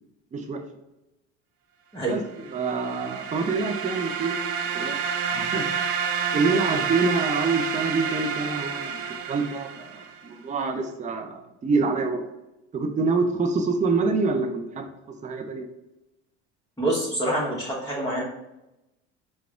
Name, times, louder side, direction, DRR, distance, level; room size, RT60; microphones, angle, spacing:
voice 1, 0.3-0.6 2.1-2.2 2.5-4.4 4.7-5.0 5.3-5.9 6.3-9.0 9.3-12.2 12.7-14.9 15.2-15.7, right 4 dB, 20° right, 5 dB, 0.6 m, -26 dB
sound 1, 2.5-10.2, right 6 dB, 60° right, 0.6 m, -29 dB
voice 2, 16.8-18.2, right 1 dB, 10° left, -7 dB, 1.3 m, -26 dB
4.7 x 2.4 x 3.6 m, 0.93 s
hypercardioid pair, 70°, 34 cm